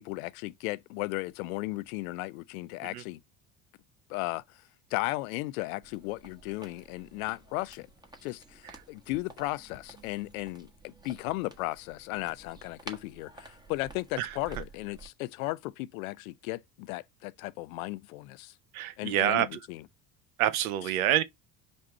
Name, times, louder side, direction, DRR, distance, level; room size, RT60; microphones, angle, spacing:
voice 1, 0.0-3.2 4.1-4.6 4.9-7.9 8.2-18.5 19.0-19.8, left 20 dB, 75° left, 0.5 m, -35 dB
sound 1, 5.8-15.1, right 3 dB, 10° right, 1.3 m, -51 dB
voice 2, 18.7-19.6 20.4-21.2, right 12 dB, 80° right, 0.7 m, -27 dB
5.3 x 2.4 x 4.1 m
hypercardioid pair, 65°, 42 cm